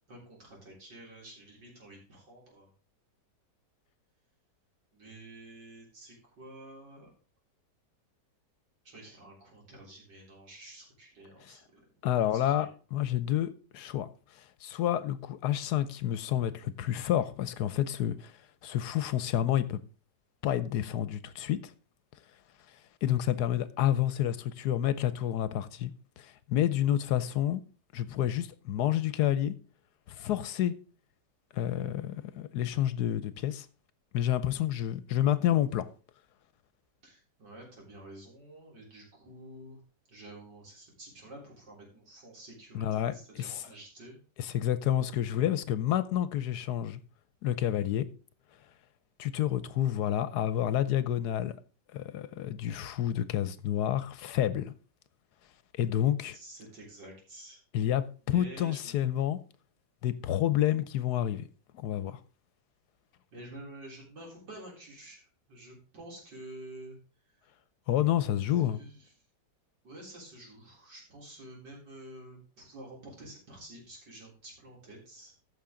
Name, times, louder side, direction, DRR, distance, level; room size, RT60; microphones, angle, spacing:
voice 1, 0.1-2.7 4.9-7.1 8.8-12.7 37.0-39.8 40.1-44.2 56.3-57.6 58.3-58.9 63.3-67.0 68.5-69.0 69.8-75.3, right 1 dB, 80° right, 4.4 m, -49 dB
voice 2, 12.0-14.1 14.3-18.3 18.6-19.8 20.4-21.7 23.0-25.9 26.2-27.6 27.9-29.5 30.1-30.7 31.5-33.7 34.1-35.9 42.7-43.6 44.4-47.0 47.4-48.1 49.2-51.5 51.9-54.7 55.7-56.4 57.7-59.4 60.0-61.5 61.7-62.2 67.9-68.8, left 11 dB, 75° left, 1.2 m, -29 dB
14.5 x 6.1 x 3.8 m
omnidirectional pair, 1.9 m